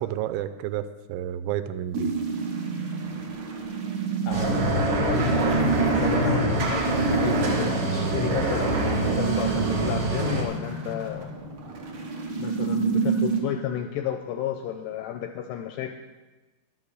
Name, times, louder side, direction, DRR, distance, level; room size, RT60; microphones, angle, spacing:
voice 1, 0.0-2.1, right 11 dB, 85° right, 12 dB, 2.9 m, -30 dB
sound 1, 1.9-13.4, right 5 dB, 70° right, 1.8 m, -29 dB
voice 2, 4.3-11.3 12.4-16.0, left 10 dB, 85° left, 5 dB, 2.4 m, -32 dB
sound 2, 4.3-10.4, right 1 dB, 50° right, 1.8 m, -25 dB
11.5 x 7.6 x 6.6 m, 1.2 s
omnidirectional pair, 5.3 m